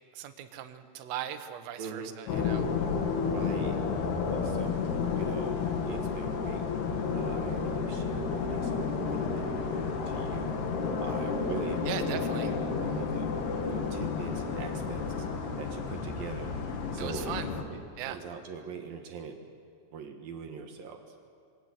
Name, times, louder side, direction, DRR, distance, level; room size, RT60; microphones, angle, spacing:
voice 1, 0.1-2.7 11.9-12.5 17.0-17.5 18.0-18.2, right 10 dB, 85° right, 8 dB, 3.9 m, -38 dB
voice 2, 1.8-2.2 3.3-3.8 4.3-4.8 5.1-5.6 5.9-6.7 7.1-10.6 11.0-15.0 15.6-17.3 17.7-19.4 19.9-21.0, right 5 dB, 60° right, 4 dB, 2.6 m, -42 dB
sound 1, 2.3-17.6, left 5 dB, 60° left, 3.5 m, -31 dB
27.0 x 22.0 x 8.2 m, 2.3 s
omnidirectional pair, 5.7 m